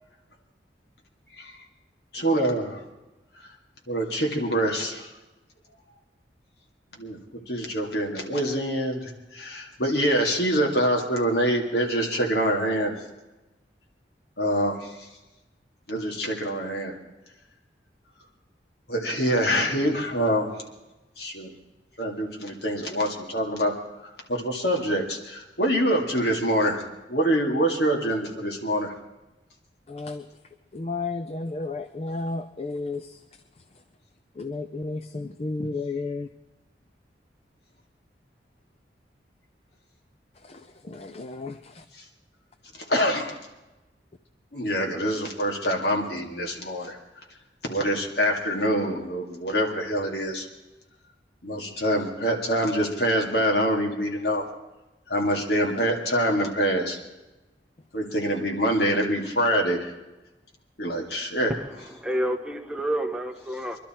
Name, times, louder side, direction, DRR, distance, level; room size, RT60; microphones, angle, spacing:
voice 1, 2.1-2.8 3.9-5.1 7.0-7.2 7.5-12.9 14.4-15.1 15.9-16.9 18.9-20.5 21.2-21.5 22.0-23.7 24.3-26.8 27.1-28.9 42.7-43.4 44.5-47.0 47.6-50.5 51.4-54.4 55.1-57.0 57.9-59.9 60.8-61.5, equal, 65° left, 1 dB, 2.3 m, -25 dB
voice 2, 29.9-30.3 30.7-33.2 34.4-36.3 40.4-41.8, left 3 dB, 35° left, 9 dB, 0.5 m, -33 dB
voice 3, 61.5-63.8, equal, 5° right, 4 dB, 0.8 m, -29 dB
23.0 x 12.0 x 4.4 m, 1.1 s
head